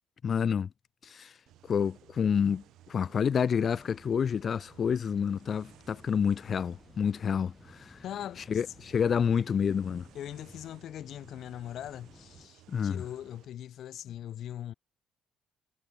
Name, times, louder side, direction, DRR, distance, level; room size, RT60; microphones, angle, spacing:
voice 1, 0.2-0.7 1.0-1.3 1.7-8.0 8.5-10.1 12.7-13.0, left 7 dB, 40° left, 0.3 m, -28 dB
sound 1, 1.5-13.5, right 14 dB, 75° right, 4.8 m, -59 dB
sound 2, 3.6-12.5, left 3 dB, 15° left, 6.5 m, -57 dB
voice 2, 8.0-8.6 10.1-14.7, left 11 dB, 60° left, 6.9 m, -41 dB
cardioid pair, 115°, 0 cm